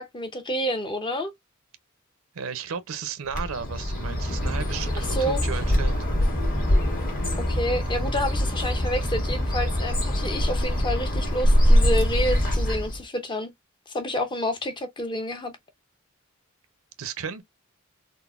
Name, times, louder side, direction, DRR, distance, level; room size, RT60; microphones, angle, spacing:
voice 1, 0.0-1.3 5.0-5.4 7.5-13.5 13.9-15.5, equal, 25° left, 0.6 m, -29 dB
voice 2, 2.3-6.0 17.0-17.4, right 6 dB, 80° right, 0.6 m, -34 dB
Bird, 3.3-13.0, equal, 45° left, 1.2 m, -24 dB
3.9 x 2.0 x 2.3 m
head